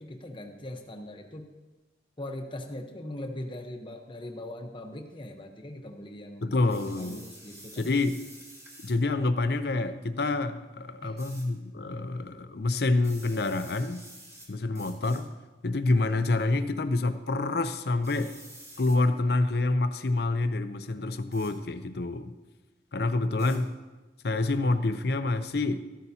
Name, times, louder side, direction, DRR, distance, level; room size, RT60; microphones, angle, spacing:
voice 1, 0.0-1.5 2.2-6.7 7.0-7.9 11.0-11.2, left 1 dB, 30° left, 3 dB, 1.0 m, -40 dB
voice 2, 6.4-7.3 7.7-8.2 8.8-14.0 14.5-15.3 15.6-18.4 18.8-22.3 22.9-23.7 24.2-25.8, left 2 dB, 60° left, 10 dB, 0.6 m, -27 dB
sound 1, 6.7-9.0 11.2-11.4 13.0-14.5 14.7-15.2 16.0-16.4 18.0-19.0 21.3-21.5 23.4-23.6, right 1 dB, 20° right, 2.5 m, -49 dB
14.0 x 12.0 x 2.8 m, 1.2 s
head